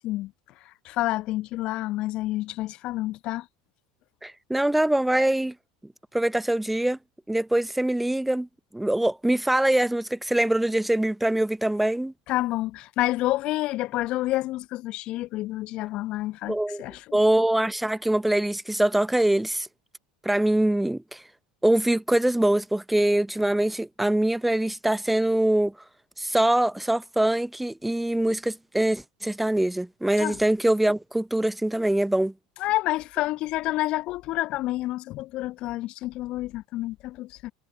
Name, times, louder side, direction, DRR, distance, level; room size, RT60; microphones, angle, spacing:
voice 1, 0.8-3.4 12.3-17.2 30.2-30.4 32.6-37.5, left 17 dB, 50° left, 1.0 m, -29 dB
voice 2, 4.2-5.5 6.1-7.0 7.3-8.5 8.7-12.1 16.5-16.8 17.1-19.7 20.2-21.2 21.6-25.7 26.2-32.3, right 1 dB, 5° right, 0.7 m, -23 dB
figure-of-eight pair, 75°, 2 cm